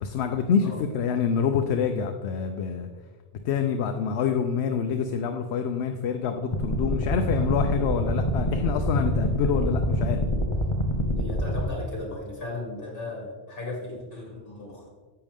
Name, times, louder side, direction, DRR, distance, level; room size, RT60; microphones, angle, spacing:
voice 1, 0.0-0.7 0.9-2.9 3.4-10.2, left 6 dB, 70° left, 6 dB, 0.8 m, -26 dB
sound 1, 6.5-11.6, equal, 30° left, 0.8 m, -26 dB
voice 2, 11.2-14.9, left 2 dB, 50° left, -2 dB, 2.8 m, -36 dB
10.5 x 7.8 x 3.6 m, 1.5 s
omnidirectional pair, 1.2 m